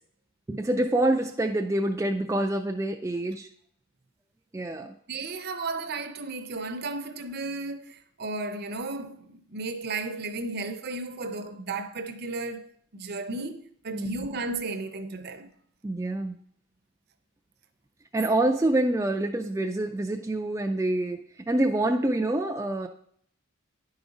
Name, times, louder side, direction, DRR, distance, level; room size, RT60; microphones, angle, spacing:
voice 1, 0.5-3.5 4.5-4.9 13.9-14.3 15.8-16.3 18.1-22.9, right 1 dB, 15° right, 0.3 m, -26 dB
voice 2, 5.1-15.5, right 3 dB, 50° right, 0.6 m, -34 dB
10.5 x 4.9 x 4.0 m
head